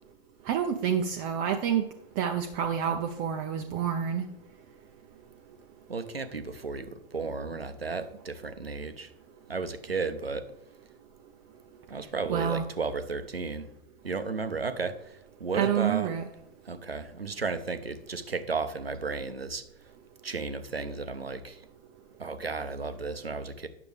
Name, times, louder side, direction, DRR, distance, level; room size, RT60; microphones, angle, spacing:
voice 1, 0.5-1.8 2.2-4.3 12.3-12.6 15.5-16.2, right 8 dB, 30° right, 5 dB, 0.5 m, -28 dB
voice 2, 5.9-9.1 9.5-10.4 11.9-13.7 14.0-16.1 16.6-19.6 20.2-21.6 22.2-23.7, right 4 dB, 90° right, 11 dB, 0.7 m, -34 dB
9.4 x 6.7 x 3.3 m, 0.78 s
figure-of-eight pair, 100°, 29 cm